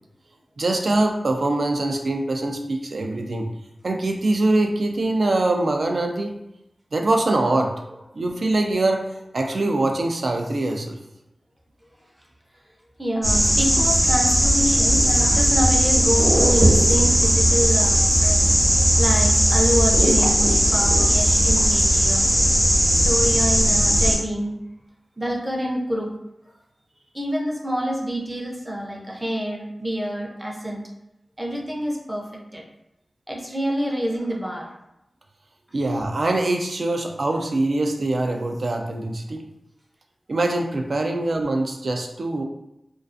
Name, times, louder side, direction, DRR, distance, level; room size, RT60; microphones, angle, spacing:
voice 1, 0.6-3.5 3.8-6.4 6.9-7.8 8.1-11.0 35.7-39.4 40.3-42.4, right 2 dB, 65° right, 3 dB, 0.3 m, -23 dB
voice 2, 13.0-18.4 19.0-22.2 22.9-24.5 25.2-26.1 27.1-30.8 31.4-32.2 32.5-32.6 33.3-34.7, equal, 10° right, -1 dB, 0.5 m, -27 dB
sound 1, 13.2-24.2, equal, 35° right, 0.9 m, -18 dB
2.3 x 2.2 x 2.5 m, 0.87 s
wide cardioid pair, 80°, 0 cm